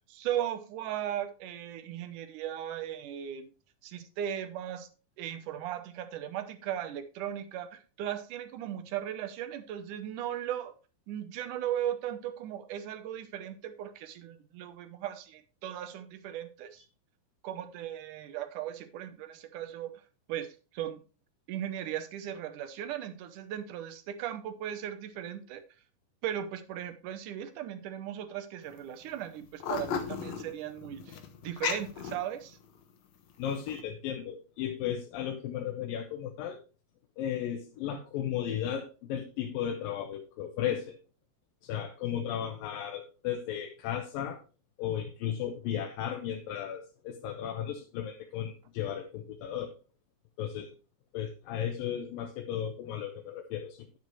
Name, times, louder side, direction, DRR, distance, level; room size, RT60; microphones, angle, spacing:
voice 1, 0.1-3.5 3.8-4.9 5.2-10.8 11.1-16.8 17.4-19.9 20.3-21.0 21.5-25.6 26.2-31.2 31.4-32.6, right 11 dB, 75° right, 11 dB, 2.3 m, -37 dB
sound 1, 28.6-28.8 29.1-32.8 33.3-33.8, left 7 dB, 60° left, 2.1 m, -35 dB
voice 2, 33.4-36.6 37.2-41.0 41.6-44.4 44.8-49.7 50.4-50.7 51.1-54.0, left 9 dB, 85° left, 3 dB, 2.7 m, -35 dB
11.0 x 7.9 x 3.1 m, 0.33 s
omnidirectional pair, 4.0 m